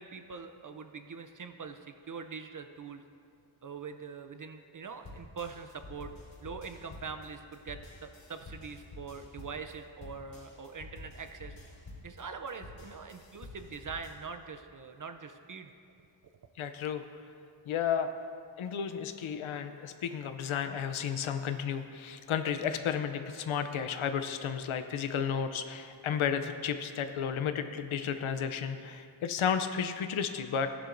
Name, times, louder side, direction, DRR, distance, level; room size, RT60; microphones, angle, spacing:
voice 1, 0.0-3.0 3.6-6.1 6.4-11.6 12.0-15.7 16.2-16.3, right 5 dB, 45° right, 8 dB, 0.5 m, -43 dB
sound 1, 5.0-14.1, left 2 dB, 70° left, 1.9 m, -49 dB
voice 2, 16.6-17.1 17.7-18.1 18.6-30.7, left 7 dB, 85° left, 8 dB, 0.6 m, -33 dB
14.0 x 11.0 x 2.6 m, 2.4 s
wide cardioid pair, 95°, 47 cm